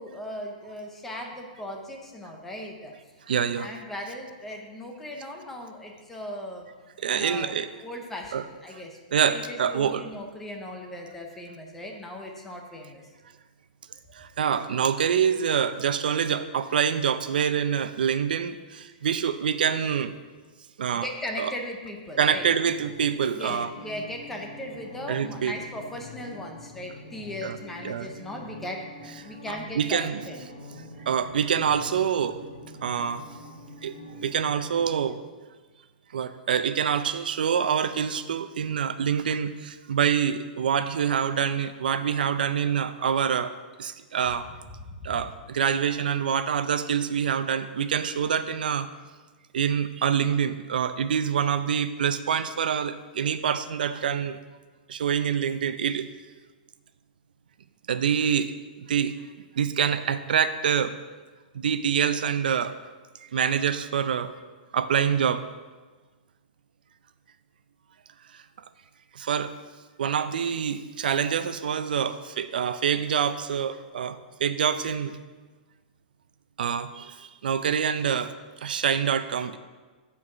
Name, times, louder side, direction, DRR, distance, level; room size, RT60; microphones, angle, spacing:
voice 1, 0.0-2.9 3.6-6.7 7.1-9.0 9.3-13.1 21.0-22.5 23.3-28.8 29.2-30.4 44.8-45.0, left 1 dB, 5° left, 1 dB, 0.6 m, -38 dB
voice 2, 3.3-3.7 7.0-7.7 8.3-8.4 9.1-10.0 14.1-20.1 20.8-21.1 21.4-21.5 22.2-23.7 25.1-25.6 27.4-27.6 27.8-28.1 29.5-30.2 31.1-32.4 32.8-33.2 33.8-33.9 34.2-35.2 36.1-43.5 43.8-44.5 45.0-48.9 49.5-54.4 54.9-56.1 57.9-58.5 58.8-59.1 59.5-60.9 61.5-62.7 63.3-64.3 64.7-65.4 68.3-68.4 69.1-69.5 70.0-75.1 76.6-78.3 78.6-79.6, right 8 dB, 90° right, 12 dB, 0.5 m, -26 dB
sound 1, 22.3-35.0, left 1 dB, 60° left, 2.4 m, -45 dB
8.4 x 4.6 x 5.8 m, 1.3 s
hypercardioid pair, 180°, 5 cm